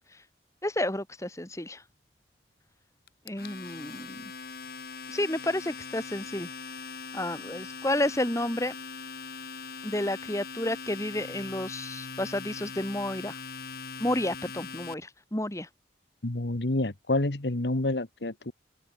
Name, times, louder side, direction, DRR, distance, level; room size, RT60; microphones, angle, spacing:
voice 1, 0.6-1.8 3.3-4.2 5.1-6.5 7.1-8.7 9.8-13.4 14.0-15.7, left 1 dB, 15° left, 2.2 m, -31 dB
Domestic sounds home sounds, 3.1-14.9, left 5 dB, 55° left, 2.0 m, -41 dB
voice 2, 16.2-18.5, left 2 dB, 75° left, 1.6 m, -28 dB
head